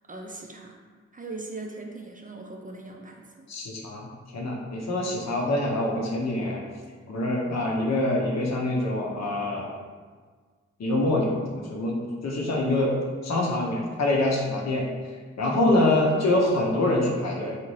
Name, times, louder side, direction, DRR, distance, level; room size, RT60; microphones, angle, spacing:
voice 1, 0.1-0.8 1.1-3.4, right 2 dB, 25° right, 1 dB, 0.4 m, -39 dB
voice 2, 3.5-6.6 7.1-9.7 10.8-12.9 13.2-14.9 15.4-17.6, left 1 dB, 60° left, -2 dB, 0.7 m, -25 dB
2.8 x 2.4 x 3.1 m, 1.6 s
supercardioid pair, 40°, 31 cm